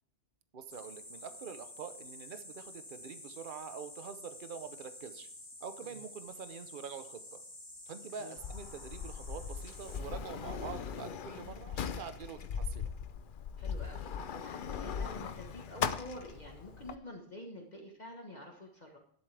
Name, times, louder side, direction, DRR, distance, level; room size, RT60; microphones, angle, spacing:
voice 1, 0.5-5.3 5.6-7.4 7.9-12.9, right 7 dB, 50° right, 10 dB, 1.0 m, -45 dB
sound 1, 0.7-10.0, left 1 dB, 15° left, 1.8 m, -50 dB
Sliding door, 8.4-16.9, left 7 dB, 55° left, 0.7 m, -39 dB
voice 2, 13.6-19.0, left 1 dB, 35° left, 0 dB, 1.5 m, -48 dB
11.5 x 11.0 x 3.4 m, 0.64 s
omnidirectional pair, 1.2 m